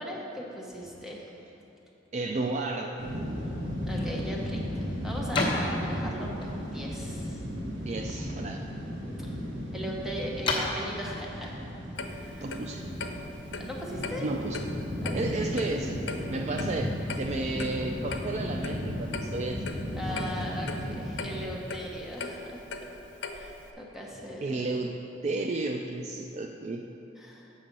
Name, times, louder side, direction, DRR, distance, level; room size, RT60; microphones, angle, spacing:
voice 1, 0.0-1.3 3.9-7.4 9.2-9.4 9.7-11.6 12.1-12.5 13.6-14.3 15.0-15.5 20.0-22.6 23.3-24.5 27.2-27.5, equal, ahead, -3 dB, 0.9 m, -39 dB
voice 2, 2.1-3.0 7.8-8.7 12.4-12.8 14.2-14.6 15.1-19.6 20.1-20.2 24.4-24.9 25.2-26.9, right 2 dB, 35° right, 3 dB, 0.3 m, -32 dB
sound 1, 3.0-21.4, equal, 80° right, 1.3 m, -35 dB
sound 2, 3.7-12.9, left 2 dB, 25° left, 1.0 m, -37 dB
Clock, 12.0-23.7, left 3 dB, 85° left, 0.6 m, -40 dB
7.3 x 6.3 x 5.3 m, 2.9 s
head